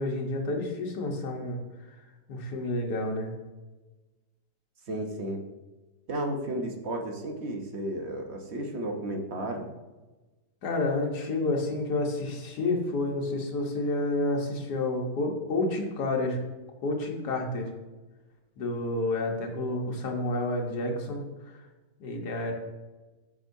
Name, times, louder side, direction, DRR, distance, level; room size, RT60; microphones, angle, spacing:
voice 1, 0.0-1.6 2.3-3.3 10.6-16.4 16.8-17.7 18.6-21.2 22.0-22.5, left 2 dB, 75° left, 1 dB, 1.7 m, -29 dB
voice 2, 4.9-5.4 6.1-9.7, right 1 dB, 50° right, 2 dB, 1.0 m, -33 dB
8.8 x 6.2 x 2.7 m, 1.2 s
omnidirectional pair, 1.8 m